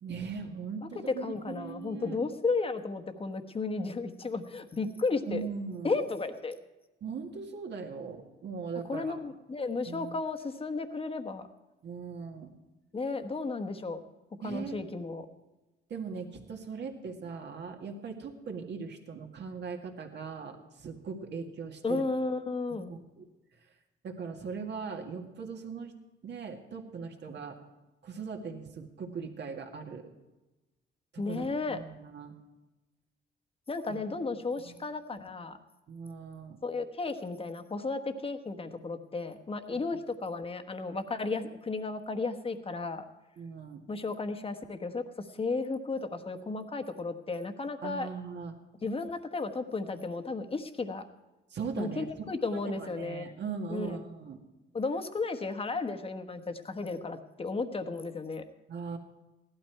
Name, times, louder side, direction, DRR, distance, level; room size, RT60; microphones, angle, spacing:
voice 1, 0.0-2.2 5.3-6.0 7.0-9.2 9.9-10.2 11.8-12.5 14.4-14.8 15.9-22.1 22.7-23.3 24.0-25.9 26.2-27.6 28.0-30.1 31.2-32.4 33.9-34.0 34.6-34.8 35.9-36.6 39.7-39.8 43.4-43.8 47.8-48.6 51.5-52.0 52.5-54.4 58.7-59.0, right 5 dB, 60° right, 3 dB, 2.0 m, -40 dB
voice 2, 1.1-5.4 5.8-6.6 8.9-11.5 12.9-14.0 14.4-15.3 21.8-22.9 31.2-31.8 33.7-35.6 36.6-43.0 43.9-48.1 48.8-51.0 51.8-53.3 53.7-54.0 54.7-58.4, left 3 dB, 30° left, 8 dB, 1.2 m, -34 dB
16.0 x 12.0 x 4.6 m, 1.1 s
cardioid pair, 90°, 20 cm